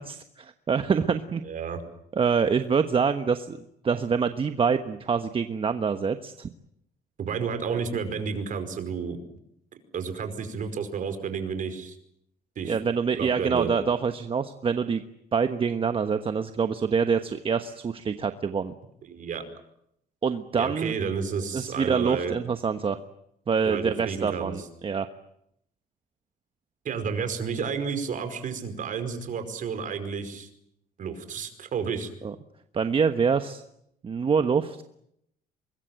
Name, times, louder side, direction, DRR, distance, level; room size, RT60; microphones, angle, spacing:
voice 1, 0.0-1.4 2.1-6.5 7.7-7.8 12.6-15.0 15.3-18.7 20.2-20.9 21.5-23.0 23.5-25.1 32.2-32.3 32.7-33.6 34.0-34.8, right 6 dB, 30° right, 9 dB, 1.2 m, -26 dB
voice 2, 1.4-1.8 7.2-9.2 9.9-12.0 12.5-12.8 13.1-13.7 19.1-19.4 20.6-22.3 23.6-24.6 26.8-30.5 31.0-32.1, right 6 dB, 50° right, 8 dB, 5.1 m, -31 dB
24.5 x 22.0 x 9.1 m, 0.75 s
cardioid pair, 110°, 17 cm